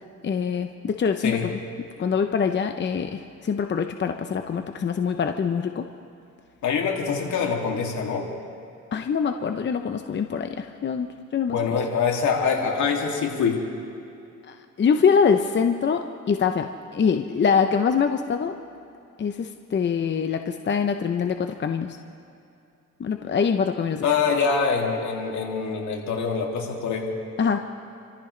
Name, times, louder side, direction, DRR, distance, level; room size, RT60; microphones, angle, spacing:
voice 1, 0.2-1.5 2.0-5.8 8.9-11.6 14.5-18.6 19.2-22.0 23.0-24.1 27.4-27.7, left 6 dB, 35° left, 6 dB, 0.7 m, -24 dB
voice 2, 6.6-8.3 11.5-13.6 24.0-27.1, left 5 dB, 70° left, 0 dB, 2.7 m, -24 dB
28.5 x 14.5 x 3.3 m, 2.6 s
cardioid pair, 90°, 30 cm